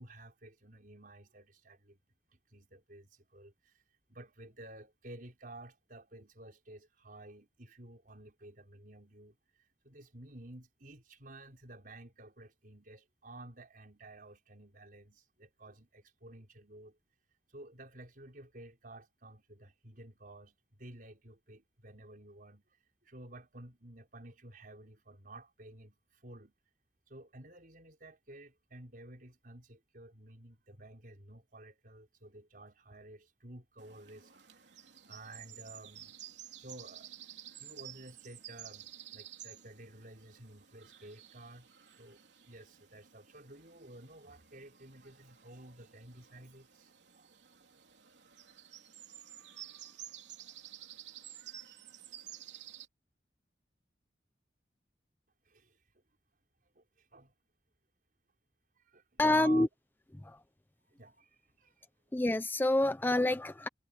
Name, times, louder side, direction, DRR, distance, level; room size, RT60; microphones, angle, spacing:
voice 1, 0.0-2.0 2.3-3.8 4.1-17.0 17.5-22.6 23.0-26.5 27.1-34.6 35.1-36.2 36.6-41.7 42.0-42.2 42.5-47.4 55.5-55.8 56.8-57.3 58.7-59.7 60.8-61.9, right 2 dB, 50° right, 5.7 m, -52 dB
sound 1, 33.8-52.9, right 11 dB, 80° right, 3.4 m, -52 dB
voice 2, 59.2-59.7 60.2-60.4 62.1-63.7, left 1 dB, 10° left, 0.5 m, -27 dB
head